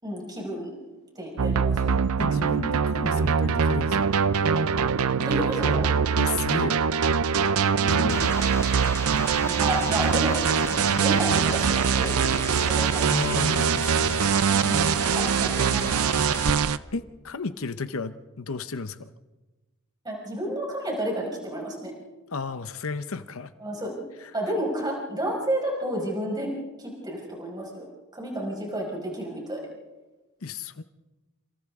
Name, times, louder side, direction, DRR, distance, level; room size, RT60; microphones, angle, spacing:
voice 1, 0.0-0.7 1.2-1.9 5.2-5.9 7.8-8.3 9.4-13.4 14.5-16.1 20.0-21.9 23.6-24.0 24.3-26.5 26.8-27.8 28.1-29.6, right 1 dB, 20° right, -2 dB, 5.4 m, -31 dB
sound 1, 1.4-16.8, right 6 dB, 90° right, 0.6 m, -23 dB
voice 2, 2.2-4.2 6.2-6.8 7.9-8.3 13.1-14.2 16.9-19.1 22.3-23.5 24.2-24.3 30.4-30.8, left 4 dB, 70° left, 11 dB, 0.8 m, -33 dB
sound 2, 8.1-16.5, left 2 dB, 10° left, 0.9 m, -36 dB
28.0 x 27.5 x 3.7 m, 1.2 s
head